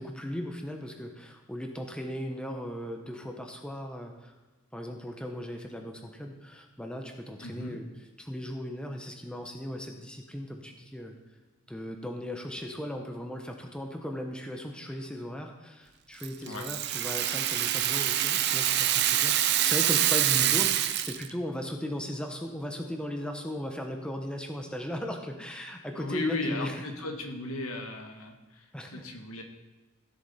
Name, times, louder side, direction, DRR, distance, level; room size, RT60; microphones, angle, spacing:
voice 1, 0.0-4.3 4.7-11.1 11.7-19.3 19.6-26.8 28.7-29.1, equal, 5° left, 3 dB, 0.9 m, -37 dB
voice 2, 7.4-7.8 16.5-16.6 20.3-20.5 25.9-28.7 28.9-29.4, left 2 dB, 90° left, 3 dB, 1.5 m, -36 dB
Rattle (instrument), 16.2-21.3, right 12 dB, 50° right, 0.5 m, -26 dB
15.5 x 7.2 x 4.2 m, 1.2 s
head